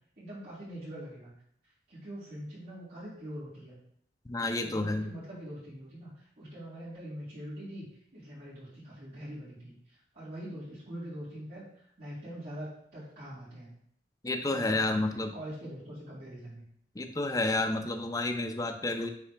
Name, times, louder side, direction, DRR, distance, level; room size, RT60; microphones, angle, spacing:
voice 1, 0.2-1.3 1.9-3.8 4.6-6.1 6.4-9.7 10.1-13.8 14.5-16.6, equal, 55° right, -10 dB, 2.3 m, -43 dB
voice 2, 4.3-5.0 14.2-15.3 17.0-19.1, left 2 dB, 20° left, 4 dB, 0.5 m, -30 dB
9.6 x 3.3 x 3.4 m, 0.68 s
head